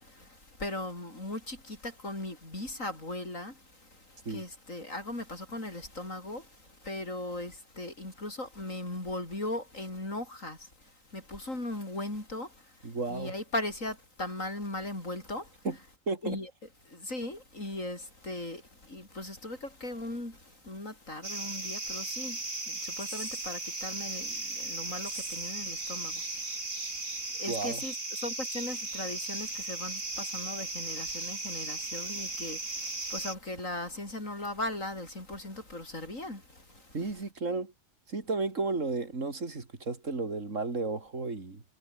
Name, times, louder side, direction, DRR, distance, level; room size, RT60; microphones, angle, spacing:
voice 1, 0.0-15.5 16.2-16.5 16.9-26.7 27.1-37.0, left 2 dB, 75° left, 7.6 m, -38 dB
voice 2, 12.8-13.3 15.6-15.8 16.1-16.4 27.5-27.8 36.9-37.7 38.1-41.6, right 3 dB, 70° right, 3.5 m, -33 dB
sound 1, 21.2-33.3, right 2 dB, 90° right, 5.3 m, -36 dB
omnidirectional pair, 1.4 m